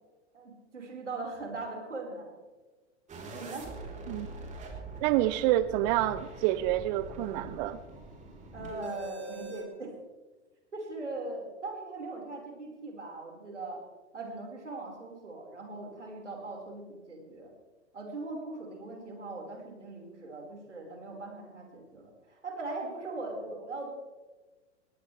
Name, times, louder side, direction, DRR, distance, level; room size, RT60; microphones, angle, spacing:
voice 1, 0.3-2.4 3.1-3.7 8.5-9.9 10.7-13.8 14.1-17.5 17.9-23.9, right 2 dB, 85° right, 0 dB, 5.4 m, -40 dB
sound 1, 3.1-9.6, right 2 dB, 20° right, 4.3 m, -44 dB
voice 2, 5.0-7.8, right 14 dB, 40° right, 15 dB, 0.7 m, -28 dB
20.5 x 18.5 x 3.5 m, 1.3 s
hypercardioid pair, 105°, 35 cm